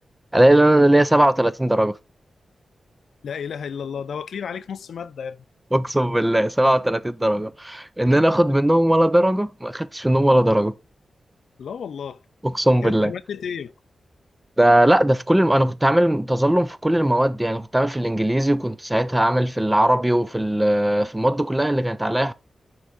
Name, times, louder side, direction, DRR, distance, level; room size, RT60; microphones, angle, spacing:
voice 1, 0.3-2.0 5.7-10.7 12.4-13.1 14.6-22.3, right 1 dB, 10° right, 0.4 m, -19 dB
voice 2, 3.2-5.4 11.6-12.2 12.8-13.7, left 7 dB, 90° left, 0.5 m, -32 dB
6.0 x 4.6 x 4.0 m
wide cardioid pair, 160°, 0 cm